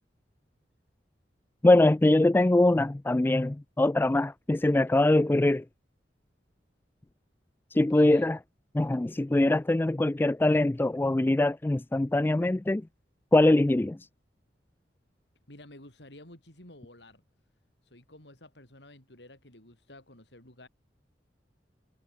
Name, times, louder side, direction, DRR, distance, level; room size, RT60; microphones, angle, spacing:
voice 1, 1.6-5.6 7.7-8.4 8.7-12.8 13.3-14.0, left 2 dB, 10° left, 0.3 m, -23 dB
voice 2, 7.7-8.3 15.5-17.2 17.8-20.7, left 1 dB, 70° left, 7.6 m, -52 dB
head